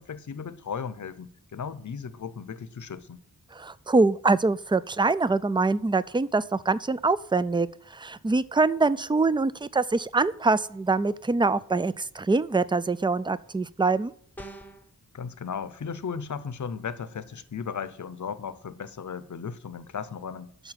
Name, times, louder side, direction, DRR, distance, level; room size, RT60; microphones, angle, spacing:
voice 1, 0.0-3.2 15.1-20.5, left 6 dB, 55° left, 0.7 m, -36 dB
voice 2, 3.5-14.1, right 3 dB, 15° right, 0.3 m, -24 dB
sound 1, 14.4-14.9, right 1 dB, 5° left, 0.9 m, -42 dB
8.9 x 6.7 x 8.0 m
wide cardioid pair, 110°, 36 cm